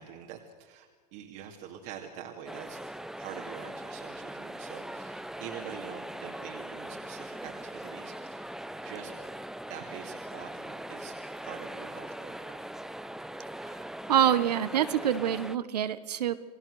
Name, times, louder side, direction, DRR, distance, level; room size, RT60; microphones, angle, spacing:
voice 1, 0.0-2.8 3.2-8.5 8.8-9.1 9.7-12.6, right 9 dB, 55° right, 1 dB, 2.5 m, -45 dB
sound 1, 2.5-15.6, right 1 dB, ahead, 0.8 m, -41 dB
voice 2, 14.1-16.4, right 10 dB, 80° right, 12 dB, 1.5 m, -26 dB
29.0 x 19.0 x 6.6 m, 1.5 s
hypercardioid pair, 100°, 20 cm